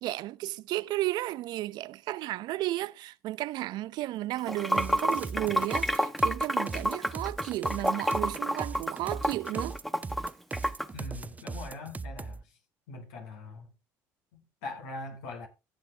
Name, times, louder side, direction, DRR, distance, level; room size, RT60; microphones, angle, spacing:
voice 1, 0.0-9.8, right 16 dB, 65° right, 0.6 m, -33 dB
Water / Sink (filling or washing), 4.4-10.9, equal, ahead, 1.0 m, -29 dB
sound 1, 4.7-12.4, right 4 dB, 20° right, 0.5 m, -39 dB
voice 2, 10.9-12.5 12.9-13.7 14.3-15.5, left 2 dB, 85° left, 4.0 m, -42 dB
15.0 x 8.0 x 3.4 m
supercardioid pair, 75°, 8 cm